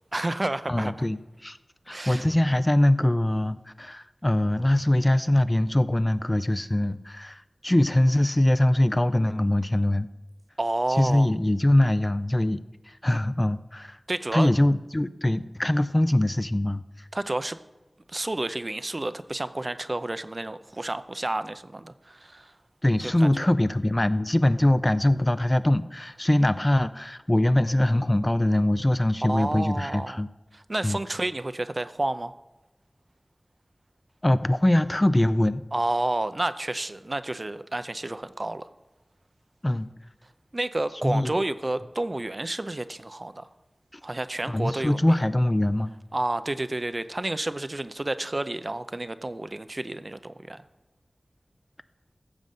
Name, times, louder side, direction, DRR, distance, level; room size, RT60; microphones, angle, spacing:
voice 1, 0.1-1.1 1.9-2.2 10.6-11.3 14.1-14.5 17.1-17.6 18.1-22.5 23.0-23.3 29.2-30.2 30.5-32.3 35.7-38.7 40.5-43.4 44.0-45.0 46.1-50.6, right 2 dB, 45° right, 12 dB, 0.6 m, -30 dB
voice 2, 0.7-1.6 1.9-10.1 10.9-12.6 13.0-14.0 14.3-16.8 22.8-30.3 30.8-31.0 34.2-35.6 39.6-39.9 41.0-41.4 44.5-45.9, left 1 dB, 25° left, 13 dB, 0.4 m, -23 dB
14.5 x 6.3 x 5.6 m, 1.0 s
wide cardioid pair, 45°, 0 cm